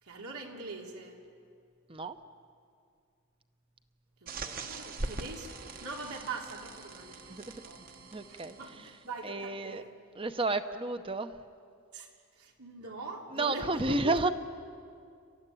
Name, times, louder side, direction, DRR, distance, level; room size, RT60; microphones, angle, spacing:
voice 1, 0.0-1.2 4.2-9.9 11.9-14.2, right 3 dB, 90° right, 0 dB, 3.3 m, -43 dB
sound 1, 4.3-9.1, right 2 dB, 40° right, 1.2 m, -42 dB
voice 2, 7.3-7.6 8.1-8.9 9.2-9.8 10.1-11.3 13.3-14.3, right 2 dB, 25° right, 10 dB, 0.8 m, -31 dB
28.0 x 14.0 x 10.0 m, 2.3 s
head